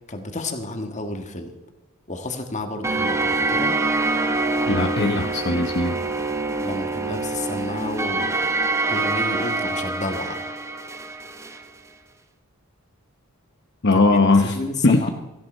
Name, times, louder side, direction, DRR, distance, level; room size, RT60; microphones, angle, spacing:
voice 1, 0.1-1.5 2.1-3.7 6.6-8.5 8.9-10.4 14.4-15.1, left 2 dB, 30° left, 6 dB, 1.7 m, -31 dB
sound 1, 2.8-11.6, right 3 dB, 15° right, 0.9 m, -25 dB
voice 2, 4.7-6.0 13.8-15.1, left 3 dB, 50° left, 4 dB, 0.9 m, -19 dB
17.5 x 15.0 x 4.4 m, 1.0 s
head